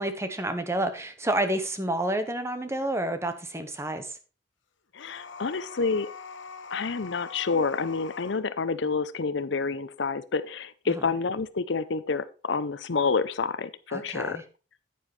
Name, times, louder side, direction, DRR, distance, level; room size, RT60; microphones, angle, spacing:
voice 1, 0.0-4.2 10.9-11.0 13.9-14.4, right 1 dB, 15° right, 8 dB, 1.1 m, -29 dB
voice 2, 4.9-6.1 6.7-14.4, left 4 dB, 65° left, 14 dB, 0.6 m, -28 dB
sound 1, 5.0-8.4, left 4 dB, 85° left, 1.1 m, -43 dB
9.5 x 9.4 x 3.3 m, 0.34 s
head